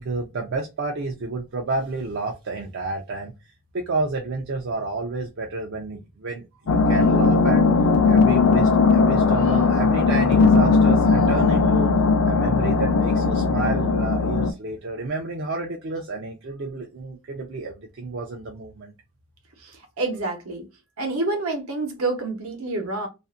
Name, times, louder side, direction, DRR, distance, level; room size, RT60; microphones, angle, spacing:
voice 1, 0.0-3.3 3.7-7.6 8.0-11.9 12.2-18.9, right 3 dB, 55° right, 0.4 m, -30 dB
sound 1, 6.7-14.5, left 4 dB, 85° left, 0.5 m, -18 dB
voice 2, 19.6-20.6 21.0-23.1, right 2 dB, 75° right, 0.9 m, -28 dB
2.5 x 2.5 x 2.4 m
head